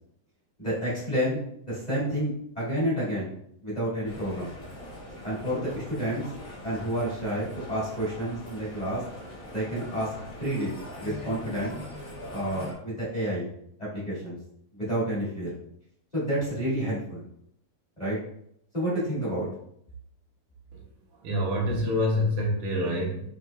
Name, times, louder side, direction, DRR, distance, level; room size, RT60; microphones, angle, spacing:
voice 1, 0.6-1.4 1.7-3.3 3.6-4.5 5.2-6.3 6.6-9.0 9.5-10.1 10.4-11.7 12.3-13.5 13.8-14.4 14.7-15.5 16.1-17.2 18.0-18.2 18.7-19.5, right 1 dB, 25° left, -9 dB, 1.0 m, -29 dB
sound 1, 4.0-12.7, left 1 dB, 85° left, 0.7 m, -42 dB
voice 2, 20.7-23.3, left 1 dB, 70° right, -2 dB, 2.0 m, -27 dB
7.7 x 3.1 x 2.2 m, 0.72 s
omnidirectional pair, 4.1 m